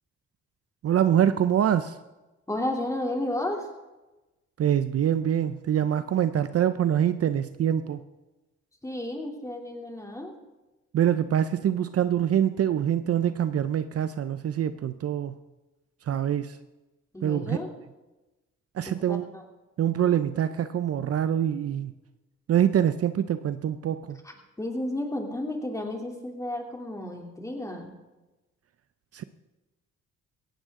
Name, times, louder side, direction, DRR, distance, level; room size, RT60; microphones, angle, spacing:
voice 1, 0.8-2.0 4.6-8.0 10.9-15.4 16.1-16.6 17.2-17.6 18.7-19.3 19.8-21.9 22.5-24.2 29.1-29.2, right 10 dB, 50° right, 12 dB, 0.7 m, -25 dB
voice 2, 2.5-3.7 8.8-10.3 17.1-17.7 18.9-19.4 24.6-27.9, left 1 dB, 10° left, 1 dB, 3.1 m, -32 dB
17.5 x 15.5 x 3.8 m, 1.1 s
cardioid pair, 90°, 30 cm